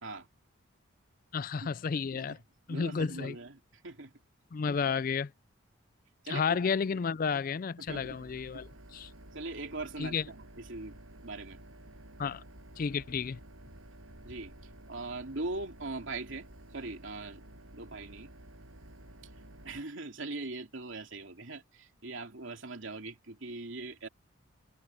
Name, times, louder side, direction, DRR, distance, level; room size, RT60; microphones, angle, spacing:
voice 1, 1.3-2.4 2.7-3.4 4.5-5.3 6.3-9.1 10.0-10.2 12.2-12.4 12.8-13.4, left 6 dB, 40° left, 0.3 m, -32 dB
voice 2, 2.7-4.1 6.2-6.6 7.8-8.2 9.3-11.0 11.2-11.6 14.2-14.5 14.9-16.5 16.7-17.4 17.7-18.3 19.6-24.1, right 2 dB, 65° right, 2.9 m, -41 dB
sound 1, 7.9-19.8, right 1 dB, 90° right, 6.8 m, -52 dB
head